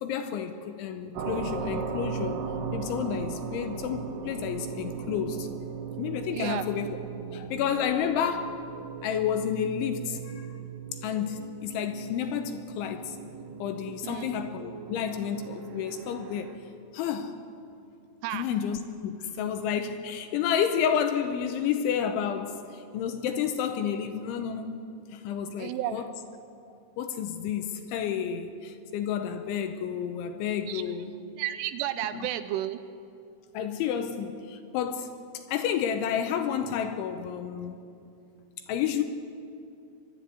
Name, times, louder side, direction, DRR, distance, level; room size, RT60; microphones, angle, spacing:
voice 1, 0.0-2.4 2.7-5.5 6.0-7.0 7.3-8.5 9.0-10.6 11.0-13.2 13.6-16.5 16.9-17.4 18.3-24.8 25.1-26.1 27.0-31.1 32.1-32.3 33.5-35.1 35.5-37.8 38.7-39.0, left 8 dB, 80° left, 7 dB, 3.0 m, -30 dB
sound 1, 1.1-16.6, right 6 dB, 65° right, 2.8 m, -38 dB
voice 2, 6.3-6.6 14.0-14.3 18.2-18.5 25.6-26.0 30.7-30.8 31.4-32.8, right 13 dB, 85° right, 12 dB, 3.0 m, -32 dB
23.0 x 12.0 x 9.7 m, 2.5 s
omnidirectional pair, 6.0 m